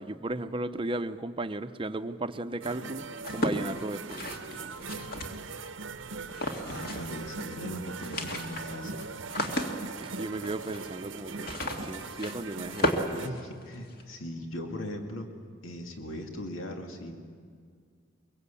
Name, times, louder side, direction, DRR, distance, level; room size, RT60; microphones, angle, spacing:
voice 1, 0.0-4.3 10.0-13.4, right 2 dB, 25° right, 10 dB, 0.7 m, -35 dB
sound 1, 2.6-13.3, right 4 dB, 70° right, 0.8 m, -40 dB
sound 2, 3.2-5.7 6.3-7.2 7.5-7.6 7.9-14.0, left 1 dB, 50° left, 2.1 m, -34 dB
voice 2, 6.5-9.2 13.1-15.3 15.6-17.2, left 1 dB, 85° left, 3 dB, 2.2 m, -39 dB
23.5 x 23.0 x 8.4 m, 2.1 s
head